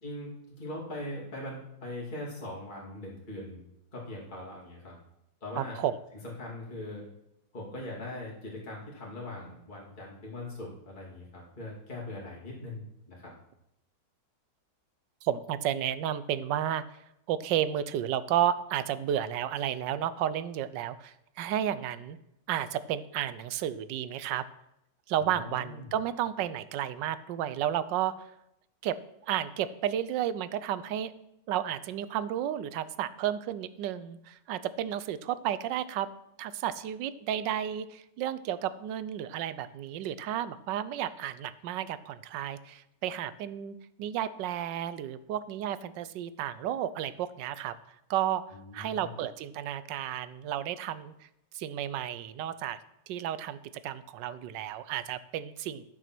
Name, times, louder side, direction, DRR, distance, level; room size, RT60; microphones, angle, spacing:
voice 1, 0.0-3.6 3.9-4.9 5.4-5.8 6.2-7.1 7.5-13.3 25.2-25.9 48.5-49.1, left 1 dB, 25° left, -4 dB, 2.4 m, -41 dB
voice 2, 5.6-6.0 15.2-16.8 17.3-22.2 22.5-24.4 25.1-28.3 28.8-29.0 29.2-31.1 31.5-36.1 36.4-47.7 48.1-48.4 48.7-51.1 51.5-52.8 53.1-55.8, right 10 dB, 85° right, 15 dB, 1.3 m, -32 dB
12.0 x 6.1 x 6.0 m, 0.82 s
omnidirectional pair, 1.9 m